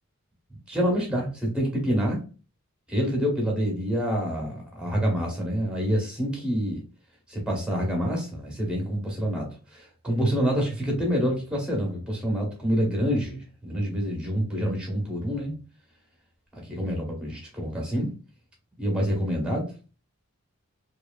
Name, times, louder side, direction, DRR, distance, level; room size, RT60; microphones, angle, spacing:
voice 1, 0.7-2.2 2.9-6.8 7.3-15.5 16.5-18.1 18.8-19.7, equal, 5° right, 0 dB, 0.8 m, -27 dB
2.8 x 2.4 x 2.2 m, 0.35 s
head